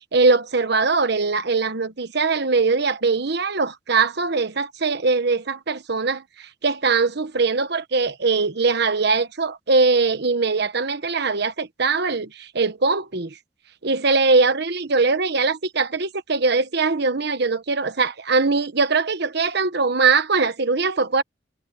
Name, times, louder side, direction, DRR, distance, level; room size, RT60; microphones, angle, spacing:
voice 1, 0.1-13.3 13.8-21.2, right 4 dB, 60° right, 1.2 m, -21 dB
head